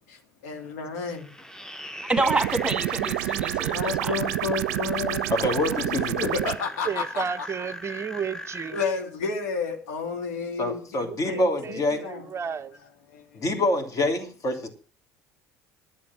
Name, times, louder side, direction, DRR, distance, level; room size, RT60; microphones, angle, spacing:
voice 1, 0.1-1.3 3.7-5.3 5.7-7.5 8.7-12.2 13.1-13.5, left 5 dB, 75° left, 2.6 m, -31 dB
sound 1, 1.1-8.8, left 1 dB, 5° left, 1.1 m, -39 dB
voice 2, 2.1-4.2, right 2 dB, 10° right, 2.2 m, -27 dB
sound 2, 2.2-6.6, right 16 dB, 70° right, 0.5 m, -28 dB
voice 3, 5.3-6.3 10.6-12.0 13.3-14.7, left 1 dB, 40° left, 3.2 m, -26 dB
voice 4, 6.9-8.8 11.1-11.8 12.1-12.8, right 7 dB, 30° right, 0.6 m, -33 dB
12.0 x 8.7 x 7.4 m
hypercardioid pair, 65°, 9 cm